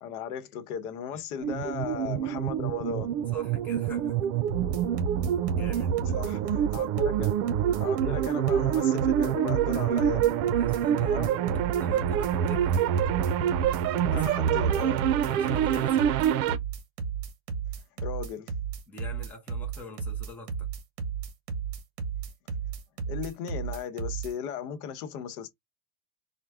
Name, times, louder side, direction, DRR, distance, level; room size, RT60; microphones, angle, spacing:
voice 1, 0.0-3.1 6.1-7.4 7.8-10.3 11.0-11.4 14.1-15.0 18.0-18.5 23.1-25.5, left 8 dB, 85° left, 1.0 m, -36 dB
sound 1, 1.4-16.6, right 9 dB, 70° right, 0.6 m, -26 dB
voice 2, 3.3-4.4 5.5-6.2 6.8-6.9 8.0-8.2 9.7-9.9 10.5-11.2 11.8-12.7 14.1-14.3 15.2-16.2 18.9-20.7, left 2 dB, 5° left, 0.6 m, -45 dB
sound 2, 4.5-24.3, right 6 dB, 45° right, 1.2 m, -33 dB
4.4 x 2.2 x 3.5 m
cardioid pair, 170°, 44 cm